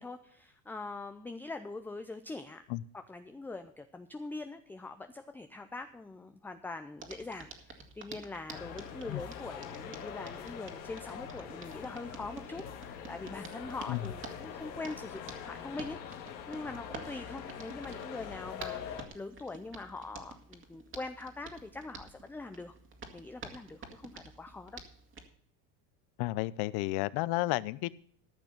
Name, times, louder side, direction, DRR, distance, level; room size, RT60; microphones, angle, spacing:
voice 1, 0.0-2.6 2.9-22.7 23.1-24.8, left 3 dB, 5° left, 8 dB, 0.4 m, -43 dB
Hands, 7.0-25.3, right 4 dB, 25° right, 2.1 m, -50 dB
sound 1, 8.5-19.1, left 8 dB, 85° left, 2.3 m, -44 dB
voice 2, 26.2-27.9, left 19 dB, 50° left, 19 dB, 0.7 m, -32 dB
14.0 x 6.0 x 6.6 m, 0.63 s
supercardioid pair, 110°, 49 cm